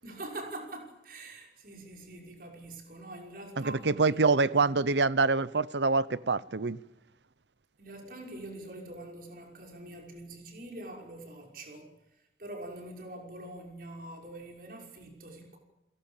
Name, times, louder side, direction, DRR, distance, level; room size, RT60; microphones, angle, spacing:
voice 1, 0.0-4.8 7.8-11.9 12.4-15.6, right 1 dB, 50° right, 5.8 m, -44 dB
voice 2, 3.6-6.8, right 3 dB, 75° right, 0.8 m, -26 dB
29.5 x 17.0 x 7.4 m
head